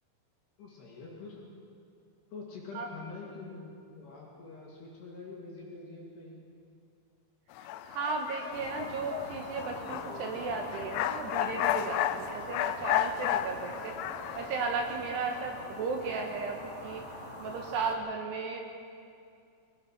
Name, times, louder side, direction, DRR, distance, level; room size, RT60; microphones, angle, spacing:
voice 1, 0.6-1.4 2.3-6.4, left 3 dB, 55° left, -4 dB, 4.2 m, -45 dB
sound 1, 7.6-14.6, left 12 dB, 85° left, 3.4 m, -33 dB
voice 2, 7.6-14.0 14.3-17.0 17.4-18.6, right 4 dB, 70° right, 2 dB, 2.7 m, -35 dB
sound 2, 8.5-17.9, left 1 dB, 25° left, 2.2 m, -43 dB
25.5 x 18.0 x 5.8 m, 2.5 s
omnidirectional pair, 6.0 m